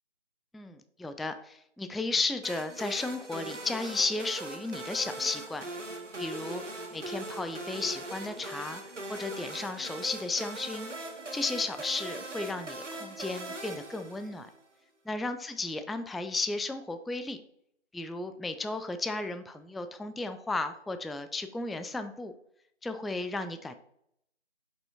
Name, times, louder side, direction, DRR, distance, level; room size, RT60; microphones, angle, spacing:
voice 1, 0.5-5.6 6.2-6.6 6.9-8.8 9.1-10.9 11.3-14.5 15.1-17.4 17.9-22.3 22.8-23.7, left 3 dB, ahead, 9 dB, 0.3 m, -34 dB
sound 1, 2.4-14.6, right 2 dB, 80° right, 1.2 m, -40 dB
7.3 x 5.2 x 2.7 m, 0.72 s
figure-of-eight pair, 175°, 36 cm